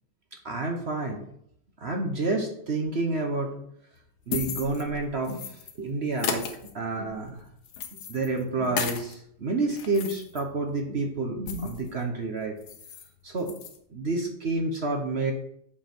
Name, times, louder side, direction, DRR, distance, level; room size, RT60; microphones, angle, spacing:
voice 1, 0.4-1.2 1.8-3.5 4.3-5.4 5.8-6.5 6.7-7.4 8.1-12.5 13.2-13.5 13.9-15.3, right 3 dB, 45° right, 3 dB, 1.0 m, -29 dB
sound 1, 4.0-5.8 6.1-9.1 9.5-11.9 12.2-12.3 12.6-13.1 13.4-13.8, left 6 dB, 65° left, 1.3 m, -36 dB
7.2 x 5.5 x 4.5 m, 0.70 s
omnidirectional pair, 2.0 m